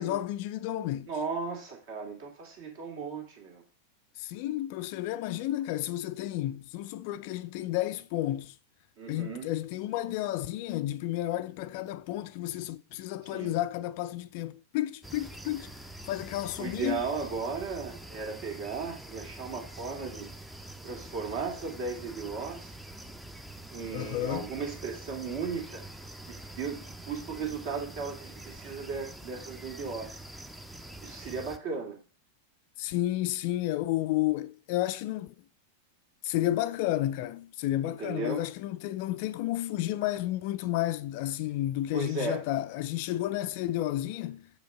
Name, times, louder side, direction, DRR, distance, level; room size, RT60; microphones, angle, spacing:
voice 1, 0.0-1.1 4.2-8.6 9.1-15.7 16.1-17.0 23.9-24.5 32.8-35.3 36.2-44.5, left 14 dB, 45° left, 0.3 m, -31 dB
voice 2, 1.1-3.6 9.0-9.5 13.2-13.5 16.6-20.3 20.8-22.7 23.7-25.8 26.3-30.2 31.0-32.0 37.8-38.4 41.9-42.4, right 5 dB, 50° right, 2.4 m, -36 dB
Israel summer early morning, 15.0-31.6, right 1 dB, 5° right, 0.6 m, -45 dB
6.3 x 5.1 x 4.9 m
figure-of-eight pair, 90°, 0 cm